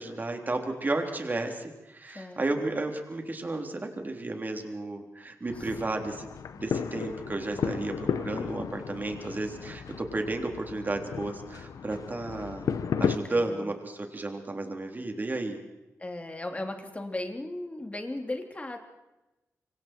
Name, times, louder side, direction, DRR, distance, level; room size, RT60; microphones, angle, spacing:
voice 1, 0.0-6.3 6.5-12.7 13.0-15.6, right 2 dB, 30° right, 4 dB, 3.5 m, -33 dB
voice 2, 2.0-2.6 5.5-5.7 13.3-13.8 16.0-18.8, left 1 dB, 25° left, 4 dB, 3.1 m, -37 dB
sound 1, 5.5-13.2, left 7 dB, 85° left, 1.0 m, -34 dB
26.0 x 24.5 x 4.6 m, 1.0 s
wide cardioid pair, 95°, 6 cm